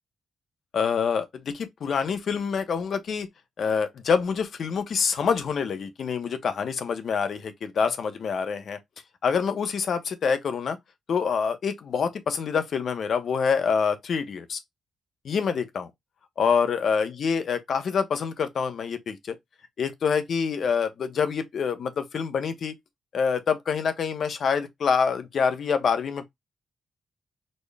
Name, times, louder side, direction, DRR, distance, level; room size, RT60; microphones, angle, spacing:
voice 1, 0.7-3.3 3.6-8.8 9.2-10.8 11.1-14.6 15.2-15.9 16.4-19.3 19.8-22.8 23.1-26.3, left 6 dB, 60° left, 0.6 m, -26 dB
4.2 x 2.1 x 3.3 m
cardioid pair, 115°, 0 cm